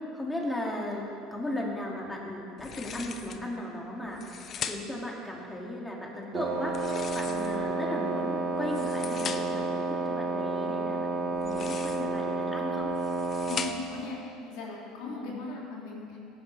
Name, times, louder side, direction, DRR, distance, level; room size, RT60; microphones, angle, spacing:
voice 1, 0.1-1.1 1.3-12.9 15.1-15.4, left 1 dB, 10° left, -2 dB, 2.4 m, -36 dB
sound 1, 2.6-3.5 4.1-5.1 6.6-7.7 8.5-9.7 11.3-12.2 12.8-14.0, left 7 dB, 40° left, 0.7 m, -39 dB
Wind instrument woodwind instrument, 6.3-13.8, right 3 dB, 60° right, 1.3 m, -31 dB
voice 2, 13.5-16.2, left 3 dB, 75° left, -3 dB, 3.1 m, -38 dB
17.5 x 10.0 x 3.4 m, 2.6 s
supercardioid pair, 95°, 0 cm